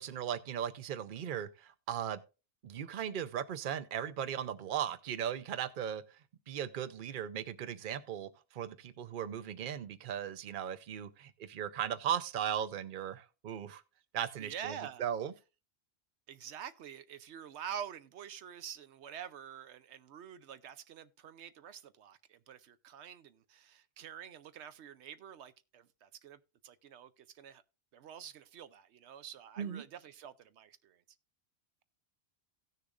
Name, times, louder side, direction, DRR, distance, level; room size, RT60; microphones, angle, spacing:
voice 1, 0.0-2.2 2.6-6.0 6.5-13.8 14.1-15.3 29.6-29.8, right 9 dB, 55° right, 0.8 m, -37 dB
voice 2, 14.4-15.0 16.3-27.6 27.9-31.0, right 9 dB, 80° right, 0.9 m, -47 dB
17.0 x 6.7 x 2.4 m
omnidirectional pair, 1.1 m